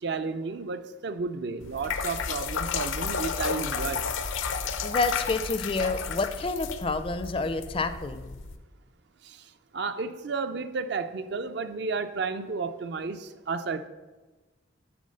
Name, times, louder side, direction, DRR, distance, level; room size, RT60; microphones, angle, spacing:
voice 1, 0.0-4.1 9.2-9.4 9.7-13.9, right 4 dB, 55° right, 10 dB, 0.4 m, -32 dB
sound 1, 1.6-8.6, left 6 dB, 80° left, 0.6 m, -32 dB
voice 2, 4.8-8.4, left 3 dB, 30° left, 10 dB, 0.4 m, -29 dB
9.4 x 3.8 x 6.4 m, 1.2 s
head